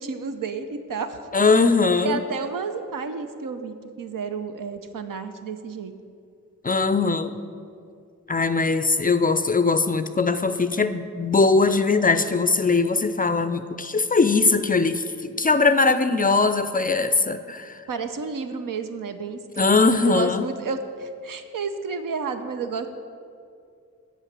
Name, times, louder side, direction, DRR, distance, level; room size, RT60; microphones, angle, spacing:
voice 1, 0.0-1.2 2.0-5.9 15.9-16.2 17.9-22.9, right 5 dB, 70° right, 8 dB, 0.7 m, -31 dB
voice 2, 1.3-2.2 6.6-7.4 8.3-17.7 19.6-20.4, left 4 dB, 25° left, 11 dB, 0.4 m, -20 dB
8.0 x 5.2 x 7.4 m, 2.3 s
cardioid pair, 60°, 34 cm